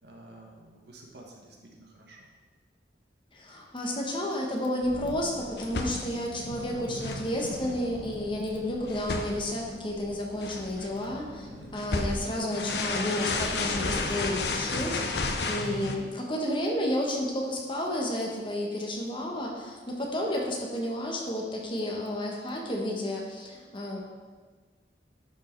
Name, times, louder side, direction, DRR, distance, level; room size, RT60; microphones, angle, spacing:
voice 1, 0.0-2.3 11.4-11.8, right 1 dB, 65° right, 0 dB, 1.5 m, -50 dB
voice 2, 3.3-24.0, left 1 dB, 30° left, -1 dB, 1.3 m, -31 dB
sound 1, 4.8-16.0, left 3 dB, 70° left, 0.8 m, -34 dB
11.5 x 4.6 x 4.6 m, 1.4 s
head